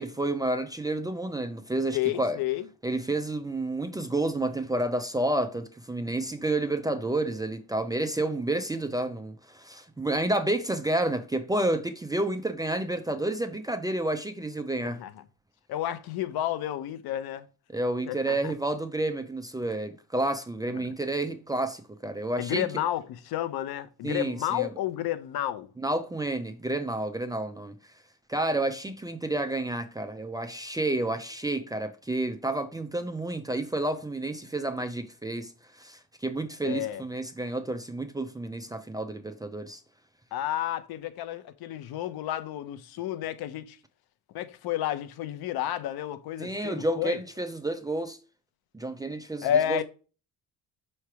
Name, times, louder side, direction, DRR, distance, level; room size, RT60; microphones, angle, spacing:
voice 1, 0.0-2.4 2.8-15.0 17.7-22.7 24.0-24.7 25.8-27.8 28.3-39.8 46.4-48.2 48.7-49.8, right 2 dB, 10° right, 0.4 m, -30 dB
voice 2, 1.9-2.7 14.8-15.2 15.7-17.5 18.1-18.5 20.7-20.9 22.4-25.7 36.6-37.0 40.3-43.8 44.3-47.2 49.4-49.8, left 11 dB, 75° left, 0.8 m, -31 dB
5.7 x 3.2 x 5.7 m
cardioid pair, 145°, 37 cm